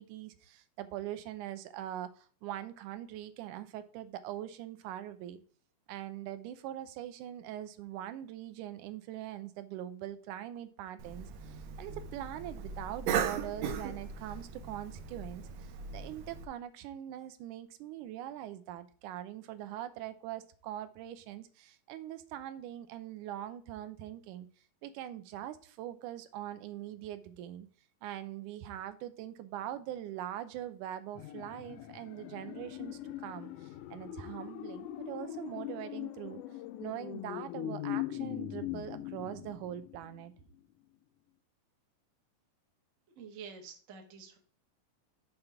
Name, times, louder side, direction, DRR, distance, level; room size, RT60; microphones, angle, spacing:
voice 1, 0.0-5.4 5.9-24.5 24.8-27.7 28.0-36.4 36.8-40.3, right 12 dB, 85° right, 11 dB, 2.1 m, -42 dB
Cough, 11.0-16.5, right 7 dB, 70° right, 1.8 m, -38 dB
sound 1, 31.1-40.3 40.6-40.7, left 12 dB, 85° left, 1.5 m, -41 dB
voice 2, 43.2-44.4, right 6 dB, 50° right, 3 dB, 0.9 m, -48 dB
7.1 x 3.9 x 5.7 m, 0.43 s
omnidirectional pair, 3.5 m